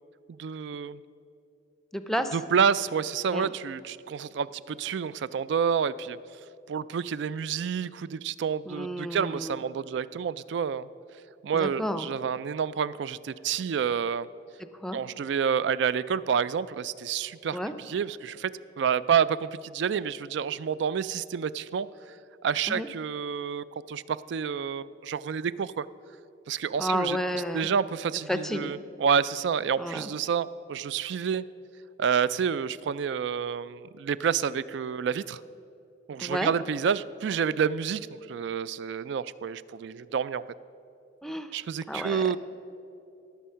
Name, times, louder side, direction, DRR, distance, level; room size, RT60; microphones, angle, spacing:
voice 1, 0.3-1.0 2.3-6.2 6.7-10.9 11.4-14.3 14.9-17.6 17.9-18.5 18.8-22.2 22.4-25.9 26.5-27.2 27.5-31.4 32.0-35.4 36.1-40.4 41.5-42.4, right 7 dB, 60° right, 17 dB, 0.3 m, -29 dB
voice 2, 1.9-2.4 3.3-3.5 8.7-9.6 11.5-12.1 14.7-15.0 17.5-17.7 22.7-22.9 26.8-27.7 28.3-28.7 29.8-30.1 36.2-36.5 41.2-41.5 41.9-42.4, equal, ahead, 9 dB, 0.5 m, -31 dB
18.5 x 7.1 x 5.6 m, 2.8 s
head